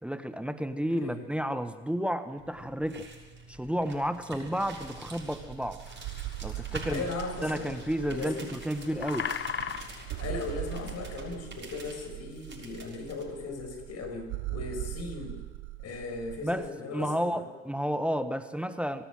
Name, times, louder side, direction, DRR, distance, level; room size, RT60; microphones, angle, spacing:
voice 1, 0.0-3.1 3.5-5.8 6.4-7.0 7.4-9.3 16.4-19.1, equal, 5° right, 11 dB, 1.4 m, -31 dB
sound 1, 2.4-13.2, right 3 dB, 35° right, 6.8 m, -46 dB
sound 2, 4.7-16.7, right 18 dB, 65° right, 0.9 m, -41 dB
sound 3, 5.9-11.2, left 7 dB, 35° left, 1.2 m, -41 dB
voice 2, 6.9-7.7 8.1-8.4 10.2-15.4 15.8-17.5, left 3 dB, 55° left, 5 dB, 6.2 m, -37 dB
26.0 x 17.5 x 7.6 m, 1.3 s
hypercardioid pair, 60°, 32 cm